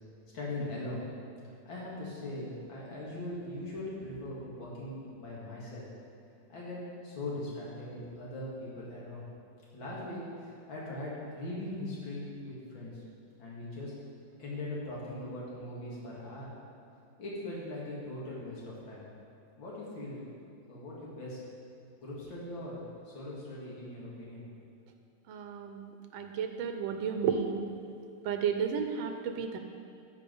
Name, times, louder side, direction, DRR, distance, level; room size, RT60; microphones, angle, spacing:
voice 1, 0.3-1.0 1.6-5.9 6.5-9.3 9.7-13.0 13.4-13.9 14.4-16.5 17.2-19.1 19.6-21.4 22.0-24.5, left 1 dB, 85° left, -6 dB, 2.9 m, -40 dB
voice 2, 25.3-27.6 28.2-29.6, right 7 dB, 80° right, 6 dB, 1.4 m, -32 dB
13.5 x 4.9 x 5.4 m, 2.4 s
omnidirectional pair, 2.1 m